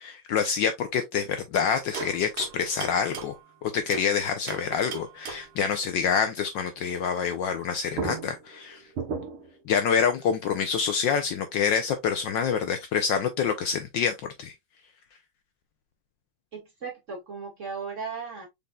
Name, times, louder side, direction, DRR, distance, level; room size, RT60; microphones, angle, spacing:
voice 1, 0.0-3.4 3.6-8.8 9.7-14.5, left 6 dB, 70° left, 1.2 m, -27 dB
sound 1, 1.5-4.1 4.5-5.6 7.6-7.7 7.9-9.6, right 5 dB, 75° right, 1.9 m, -37 dB
voice 2, 16.5-18.5, right 5 dB, 35° right, 2.2 m, -36 dB
5.4 x 4.0 x 2.3 m
omnidirectional pair, 2.4 m